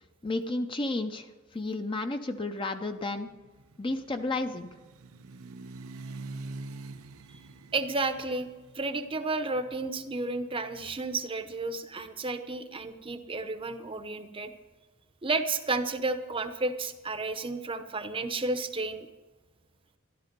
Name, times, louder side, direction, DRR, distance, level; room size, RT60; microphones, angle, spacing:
voice 1, 0.2-3.3 3.8-4.7, left 2 dB, 25° left, 7 dB, 0.6 m, -32 dB
sound 1, 3.1-11.1, right 3 dB, 90° right, 0.8 m, -46 dB
voice 2, 7.7-8.5 8.7-14.5 15.2-19.1, right 3 dB, 25° right, 9 dB, 0.8 m, -32 dB
13.5 x 11.5 x 5.2 m, 1.2 s
head